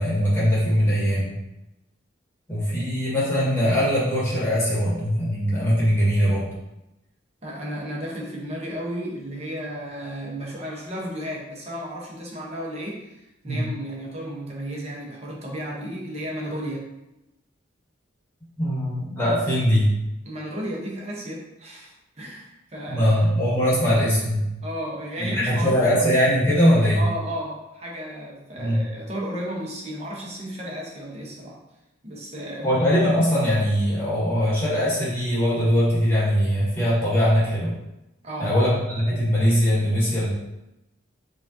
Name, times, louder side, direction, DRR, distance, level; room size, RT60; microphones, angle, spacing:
voice 1, 0.0-1.4 2.5-6.5 13.4-13.6 18.6-19.9 22.9-24.4 25.2-27.0 28.6-28.8 32.6-37.8 38.4-40.3, equal, 15° left, -8 dB, 1.3 m, -21 dB
voice 2, 7.4-16.9 20.2-23.1 24.6-26.1 27.0-31.6 32.0-32.8 38.2-38.6, equal, 35° right, -3 dB, 0.8 m, -33 dB
5.0 x 2.4 x 2.6 m, 0.92 s
head